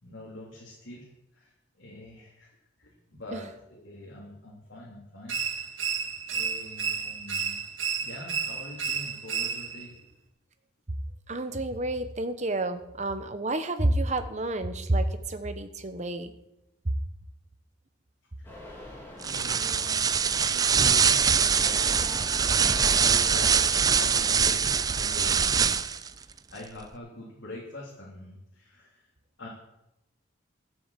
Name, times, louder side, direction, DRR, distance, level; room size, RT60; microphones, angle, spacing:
voice 1, 0.0-1.1 1.3-5.8 6.3-7.6 8.0-9.9 18.4-18.8 19.2-20.1 20.4-22.2 22.8-25.7 26.2-29.1 29.4-29.5, left 1 dB, 70° left, -5 dB, 3.3 m, -44 dB
sound 1, 5.3-9.9, right 6 dB, 80° right, 2.0 m, -32 dB
voice 2, 11.3-16.3, right 1 dB, 35° right, 9 dB, 1.0 m, -29 dB
sound 2, 18.4-24.4, left 1 dB, 10° left, 3.1 m, -43 dB
sound 3, 19.2-26.1, right 6 dB, 20° right, 0.3 m, -23 dB
13.0 x 8.0 x 7.5 m, 0.88 s
head